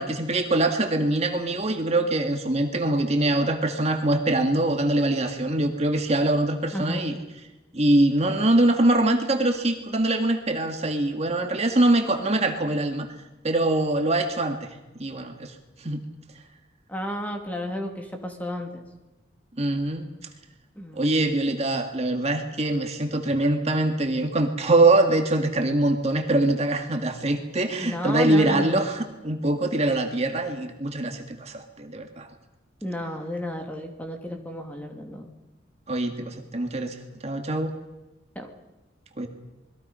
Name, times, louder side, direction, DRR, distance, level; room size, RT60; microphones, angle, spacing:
voice 1, 0.0-7.1 7.7-13.1 13.4-14.7 15.0-15.5 15.8-16.0 19.6-20.1 20.9-32.3 35.9-37.0 37.2-37.7 39.2-39.3, right 2 dB, 35° right, 5 dB, 1.9 m, -23 dB
voice 2, 6.7-7.1 16.9-18.9 20.8-21.1 27.8-28.8 32.8-35.3 38.3-38.5, equal, 10° left, 3 dB, 2.6 m, -32 dB
28.0 x 21.5 x 5.6 m, 1.0 s
head